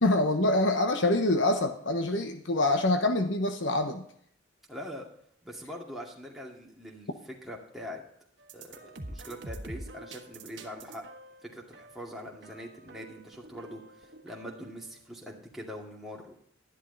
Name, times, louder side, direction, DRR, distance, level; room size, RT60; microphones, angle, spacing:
voice 1, 0.0-4.0, left 2 dB, 65° left, 6 dB, 1.1 m, -25 dB
voice 2, 4.7-5.1 5.4-8.0 8.5-11.0 11.4-16.4, equal, ahead, -3 dB, 2.4 m, -43 dB
sound 1, 8.4-14.8, right 1 dB, 60° right, 1.5 m, -46 dB
12.5 x 11.0 x 4.0 m, 0.65 s
head